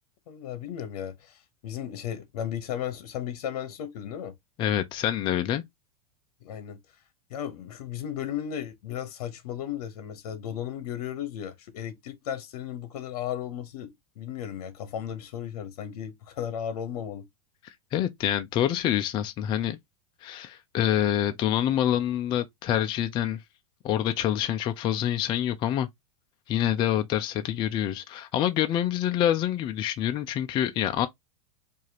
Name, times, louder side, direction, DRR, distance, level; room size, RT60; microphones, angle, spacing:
voice 1, 0.3-4.3 6.4-6.8 7.3-17.2, left 9 dB, 70° left, 0.9 m, -35 dB
voice 2, 4.6-5.6 17.9-19.8 20.2-23.4 23.8-25.9 26.5-31.1, left 11 dB, 25° left, 0.3 m, -26 dB
4.7 x 2.5 x 2.7 m
supercardioid pair, 145°, 20 cm